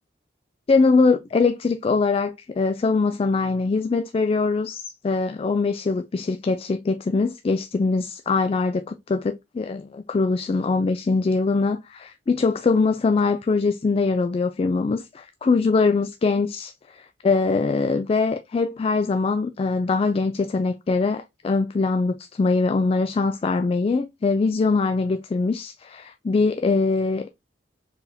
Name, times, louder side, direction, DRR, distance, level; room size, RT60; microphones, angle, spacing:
voice 1, 0.7-27.3, left 4 dB, 35° left, 0.3 m, -22 dB
4.5 x 3.5 x 2.7 m
head